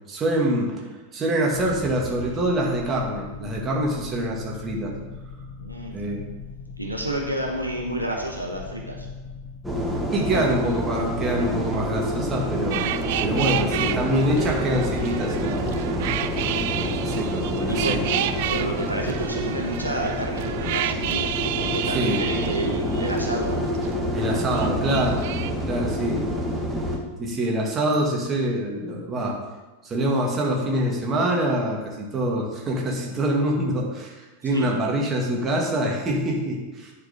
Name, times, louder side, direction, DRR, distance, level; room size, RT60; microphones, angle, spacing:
voice 1, 0.1-4.9 5.9-6.2 10.1-12.9 13.2-15.7 16.6-18.0 21.9-22.2 24.1-25.3 25.7-26.2 27.2-29.4 29.8-36.9, right 1 dB, 25° right, -1 dB, 2.0 m, -25 dB
sound 1, 1.5-21.3, left 5 dB, 35° left, 1.5 m, -40 dB
voice 2, 5.6-6.0 6.8-9.1 10.1-10.5 17.7-18.0 18.5-23.7 34.4-34.7, right 1 dB, 90° right, -1 dB, 1.1 m, -30 dB
sound 2, 9.6-27.0, equal, 5° right, 1.3 m, -28 dB
sound 3, 12.7-23.9 24.2-25.5, right 12 dB, 50° right, 0.4 m, -31 dB
10.0 x 4.7 x 5.1 m, 1.2 s
figure-of-eight pair, 90°, 0 cm